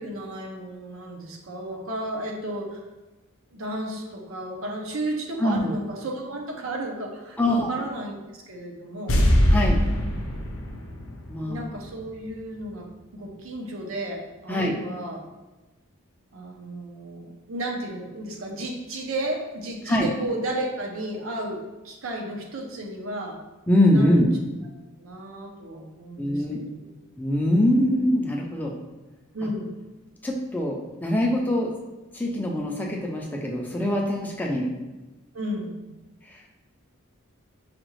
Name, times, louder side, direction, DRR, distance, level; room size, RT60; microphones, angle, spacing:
voice 1, 0.0-2.8 3.5-9.3 11.4-12.9 13.1-15.2 16.3-21.6 21.8-23.4 23.9-24.3 25.0-26.5 26.7-27.0 29.3-29.8 35.3-35.8, right 1 dB, 70° right, 1 dB, 0.6 m, -33 dB
voice 2, 5.4-5.7 7.4-7.7 9.5-9.8 11.3-11.6 14.5-14.7 19.9-20.1 23.7-24.3 26.2-26.6 27.2-28.7 30.2-31.7 32.1-34.7, left 1 dB, 10° left, -1 dB, 0.4 m, -23 dB
sound 1, 9.1-12.3 12.5-12.6, equal, 75° left, 0.6 m, -23 dB
4.9 x 2.3 x 3.1 m, 1.1 s
head